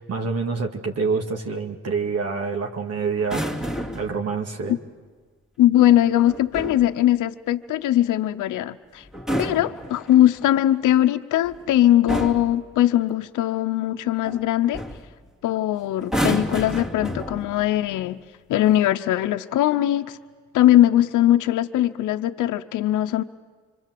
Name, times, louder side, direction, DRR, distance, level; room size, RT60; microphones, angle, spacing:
voice 1, 0.0-3.5 3.9-4.8, right 4 dB, 55° right, 2 dB, 2.2 m, -26 dB
sound 1, 3.2-4.2 6.3-6.9 9.0-10.4 11.4-11.7 12.1-12.6 14.3-14.4 14.7-15.1 16.0-17.7 18.6-18.9, equal, ahead, 2.5 m, -29 dB
voice 2, 5.6-9.0 9.4-14.8 15.4-18.2 18.5-20.2 20.5-23.2, left 13 dB, 80° left, 8 dB, 0.9 m, -20 dB
26.5 x 24.5 x 7.8 m, 1.5 s
cardioid pair, 90°, 30 cm